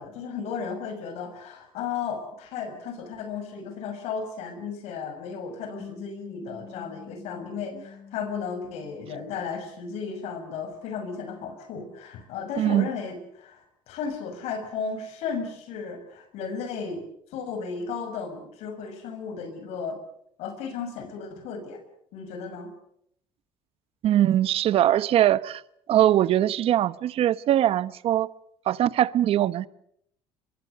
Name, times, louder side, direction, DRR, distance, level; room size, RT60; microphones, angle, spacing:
voice 1, 0.0-17.0 17.3-20.0 20.4-21.8 22.1-22.7, left 5 dB, 75° left, 6.3 m, -34 dB
sound 1, 5.8-10.4, left 6 dB, 35° left, 7.0 m, -48 dB
voice 2, 12.6-12.9 24.0-25.6 25.9-28.3 28.7-29.7, right 12 dB, 60° right, 1.0 m, -21 dB
24.0 x 23.5 x 6.8 m
supercardioid pair, 95°, 11 cm